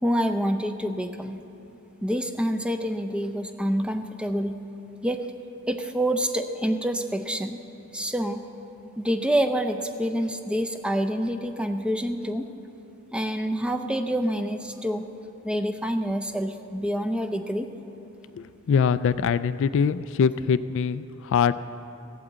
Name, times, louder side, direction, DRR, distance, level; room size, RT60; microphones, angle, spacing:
voice 1, 0.0-1.4 2.0-4.6 5.0-5.2 5.7-7.6 7.9-8.4 9.0-12.5 13.1-15.1 15.4-17.7, equal, 5° right, 6 dB, 0.5 m, -27 dB
voice 2, 18.4-21.6, left 6 dB, 60° left, 14 dB, 0.3 m, -23 dB
15.5 x 8.6 x 8.0 m, 2.9 s
head